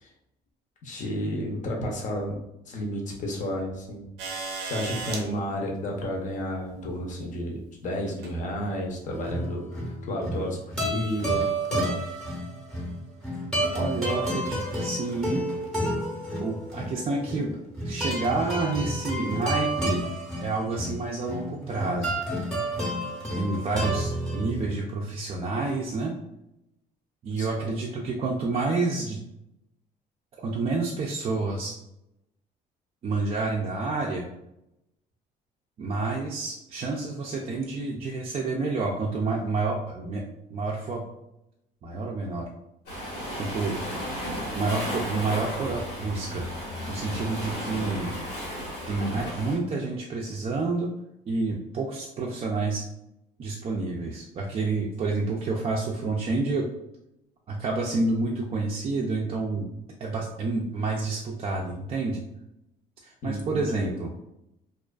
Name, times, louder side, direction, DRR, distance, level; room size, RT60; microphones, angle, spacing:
voice 1, 0.8-4.1 4.6-12.0 27.4-27.7 63.2-63.9, equal, 50° left, 0 dB, 0.6 m, -32 dB
sound 1, 4.2-5.2 6.6-6.7 8.1-8.3 9.3-9.4, right 4 dB, 90° right, 0.5 m, -34 dB
sound 2, 9.1-24.7, right 1 dB, 5° left, 0.7 m, -30 dB
voice 2, 13.7-15.4 16.4-17.6 17.8-20.1 20.4-22.2 23.3-26.1 27.2-29.2 30.4-31.7 33.0-34.2 35.8-40.2 40.5-41.1 41.8-42.5 43.4-43.8 44.5-46.5 46.9-48.1 48.9-50.9 51.3-52.8 53.4-56.7 57.5-59.7 60.0-62.2 63.0-64.1, right 3 dB, 35° right, -2 dB, 0.4 m, -29 dB
Waves surf, 42.9-49.6, equal, 90° left, 1.2 m, -34 dB
2.4 x 2.3 x 2.2 m, 0.84 s
cardioid pair, 110°, 17 cm